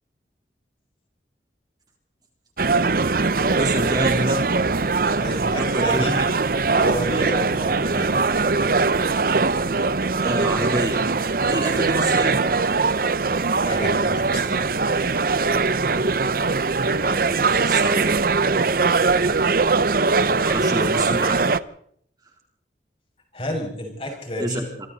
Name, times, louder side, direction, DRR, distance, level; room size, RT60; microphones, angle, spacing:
sound 1, 2.6-21.6, right 4 dB, 50° right, 0.8 m, -21 dB
voice 1, 3.6-4.4 5.6-6.3 10.2-12.4 16.5-18.1 20.3-21.5 24.4-24.6, right 1 dB, 20° right, 1 dB, 3.7 m, -28 dB
voice 2, 5.2-6.2 6.7-8.2 13.7-14.7 23.3-24.7, left 1 dB, 30° left, 1 dB, 6.7 m, -30 dB
26.5 x 24.5 x 4.2 m, 0.67 s
head